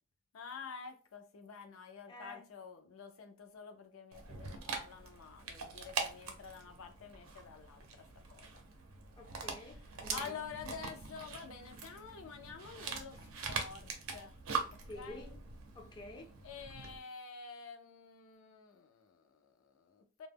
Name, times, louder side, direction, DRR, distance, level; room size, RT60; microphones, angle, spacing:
voice 1, 0.3-8.5 10.1-14.4 14.7-15.4 16.4-20.3, left 6 dB, 80° left, 0.4 m, -49 dB
voice 2, 2.1-2.4 9.2-10.4 14.8-15.3 15.8-16.3, left 2 dB, 20° left, 0.3 m, -49 dB
Dog, 4.1-17.0, right 5 dB, 90° right, 0.5 m, -43 dB
Bass guitar, 10.0-14.4 14.7-16.3, right 1 dB, 40° right, 0.5 m, -63 dB
2.1 x 2.0 x 3.3 m
head